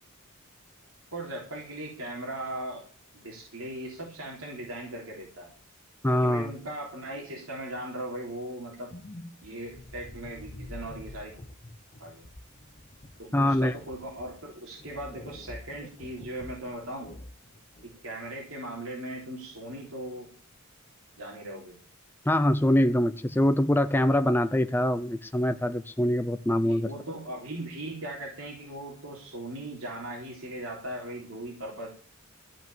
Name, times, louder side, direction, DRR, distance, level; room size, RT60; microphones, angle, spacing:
voice 1, 1.1-2.8 3.1-5.5 6.1-8.9 9.4-11.3 12.0-12.3 13.2-17.1 17.8-20.3 21.2-21.7 26.6-31.9, right 1 dB, 70° right, 3.7 m, -38 dB
voice 2, 6.0-6.5 13.3-13.7 22.3-26.9, left 1 dB, 10° left, 0.5 m, -24 dB
sound 1, 8.9-18.0, left 1 dB, 30° left, 0.9 m, -46 dB
14.5 x 5.6 x 9.1 m
head